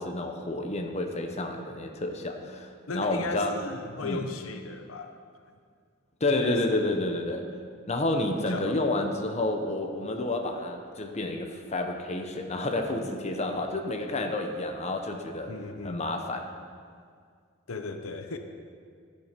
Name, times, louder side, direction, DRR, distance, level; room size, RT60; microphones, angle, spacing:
voice 1, 0.0-3.7 4.0-4.3 6.2-7.5 7.9-15.5 15.8-16.6, left 2 dB, 35° left, 4 dB, 0.9 m, -30 dB
voice 2, 2.9-5.1 6.3-6.9 8.5-8.8 15.5-16.0 17.7-18.4, left 3 dB, 85° left, 6 dB, 0.8 m, -36 dB
14.0 x 7.4 x 5.2 m, 2.1 s
head